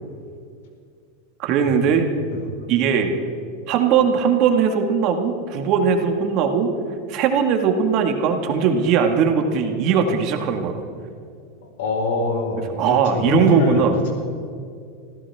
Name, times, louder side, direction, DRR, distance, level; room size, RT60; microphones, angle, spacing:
voice 1, 1.4-2.1 2.7-3.1 3.7-6.7 7.1-10.8 12.8-14.1, right 6 dB, 45° right, 4 dB, 1.8 m, -19 dB
voice 2, 11.8-14.1, left 2 dB, 75° left, 1 dB, 4.7 m, -24 dB
25.5 x 15.0 x 3.6 m, 2.3 s
supercardioid pair, 135°, 0 cm